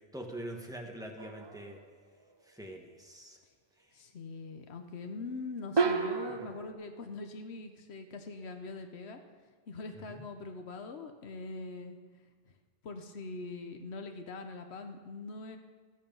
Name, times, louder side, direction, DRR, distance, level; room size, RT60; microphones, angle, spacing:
voice 1, 0.1-1.8 2.5-3.4 6.3-6.5 10.1-10.2, right 1 dB, 5° right, 1 dB, 1.6 m, -44 dB
sound 1, 1.2-1.8 5.8-6.7, right 4 dB, 30° right, 0.6 m, -31 dB
voice 2, 3.9-9.2 9.7-12.0 12.8-15.6, left 3 dB, 85° left, 6 dB, 1.2 m, -42 dB
13.5 x 13.0 x 5.5 m, 1.5 s
omnidirectional pair, 1.1 m